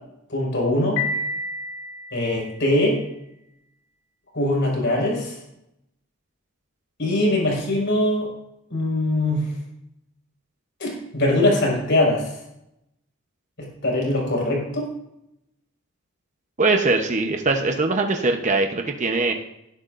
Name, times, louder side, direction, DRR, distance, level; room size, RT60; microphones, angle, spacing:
voice 1, 0.3-1.0 2.1-3.0 4.3-5.3 7.0-8.3 8.7-9.5 10.8-12.4 13.8-14.9, left 1 dB, 55° left, -2 dB, 5.5 m, -22 dB
Piano, 1.0-2.9, left 2 dB, 75° left, 3.9 m, -30 dB
voice 2, 16.6-19.3, right 3 dB, 35° right, 4 dB, 0.9 m, -21 dB
18.5 x 11.5 x 2.6 m, 0.83 s
head